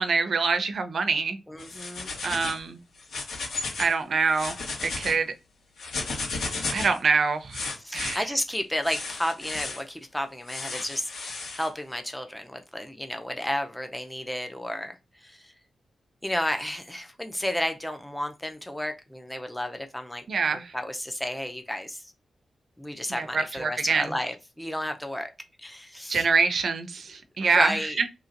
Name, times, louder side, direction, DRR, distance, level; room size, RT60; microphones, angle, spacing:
voice 1, 0.0-1.4 2.2-2.8 3.8-4.6 4.8-5.3 6.7-8.2 20.3-20.7 23.2-24.0 26.1-27.7, right 5 dB, 55° right, 0.6 m, -25 dB
voice 2, 1.5-2.1 7.7-15.5 16.2-20.3 20.5-22.1 22.8-25.3 25.6-26.3 27.4-28.0, left 1 dB, 5° left, 0.6 m, -32 dB
sound 1, 1.6-2.6 3.0-3.9 4.3-5.1 5.8-7.0 7.5-8.2 8.8-9.8 10.5-11.7, left 3 dB, 85° left, 1.5 m, -34 dB
2.9 x 2.8 x 3.8 m
wide cardioid pair, 135°, 0 cm